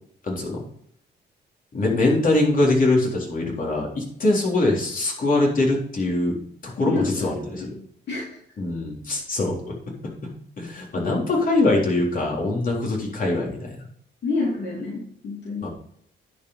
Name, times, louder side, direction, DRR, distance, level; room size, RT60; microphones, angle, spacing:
voice 1, 0.2-0.6 1.7-6.4 6.6-7.7 8.6-9.7 10.0-10.3 10.6-13.8 15.6-15.7, left 2 dB, 45° left, -2 dB, 3.8 m, -23 dB
voice 2, 6.8-7.7 8.1-8.2 10.9-11.1 14.2-15.7, left 3 dB, 60° left, -3 dB, 2.8 m, -28 dB
10.5 x 5.4 x 5.6 m, 0.67 s
cardioid pair, 90°, 20 cm